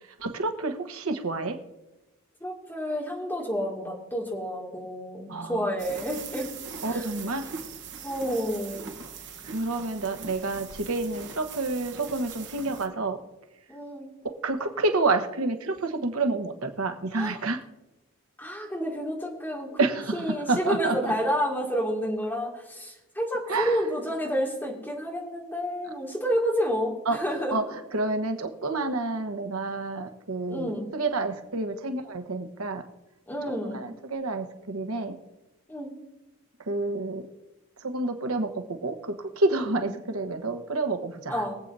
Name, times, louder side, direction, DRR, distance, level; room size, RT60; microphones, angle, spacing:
voice 1, 0.2-1.6 5.3-5.7 6.8-7.5 9.4-13.2 14.4-17.6 19.8-20.2 20.5-21.1 23.5-23.8 27.1-27.2 27.5-27.6 27.9-32.8 33.7-35.2 36.7-37.2 37.8-41.4, right 3 dB, 90° right, 7 dB, 1.1 m, -29 dB
voice 2, 2.4-6.5 6.9-7.1 8.0-8.9 10.1-10.2 13.7-14.1 17.1-17.4 18.4-19.9 20.1-27.6 30.5-30.9 33.3-33.8 35.7-36.0 39.8-39.9 41.3-41.6, equal, 10° left, -3 dB, 2.2 m, -30 dB
sound 1, 5.8-12.9, right 6 dB, 55° right, 1.1 m, -41 dB
23.0 x 8.1 x 2.7 m, 0.99 s
head